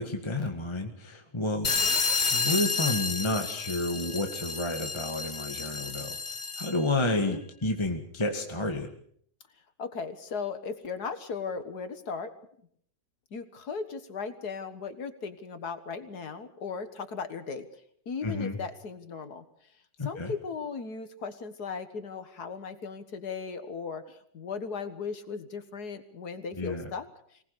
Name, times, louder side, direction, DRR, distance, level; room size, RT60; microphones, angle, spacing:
voice 1, 0.0-1.7 2.3-6.2 6.6-8.9 18.2-18.6 20.0-20.3 26.6-26.9, left 2 dB, 15° left, 3 dB, 1.7 m, -30 dB
sound 1, 1.6-6.9, left 4 dB, 30° left, 1.0 m, -30 dB
voice 2, 7.0-7.4 9.8-12.3 13.3-17.7 18.1-19.4 20.0-27.1, left 5 dB, 65° left, 10 dB, 2.0 m, -37 dB
24.5 x 19.0 x 6.8 m, 0.64 s
omnidirectional pair, 1.8 m